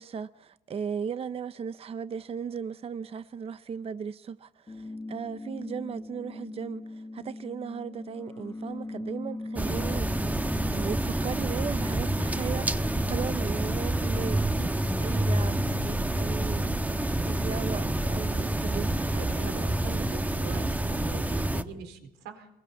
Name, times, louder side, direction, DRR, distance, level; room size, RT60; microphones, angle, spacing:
voice 1, 0.0-10.4 10.7-17.0 17.2-20.1, right 6 dB, 35° right, 0.8 m, -37 dB
sound 1, 4.7-14.7, left 2 dB, 20° left, 1.6 m, -40 dB
sound 2, 9.6-21.6, right 1 dB, 10° right, 1.4 m, -28 dB
voice 2, 19.2-19.6 19.9-22.5, right 6 dB, 85° right, 4.3 m, -43 dB
25.5 x 22.0 x 7.2 m
cardioid pair, 110°, 17 cm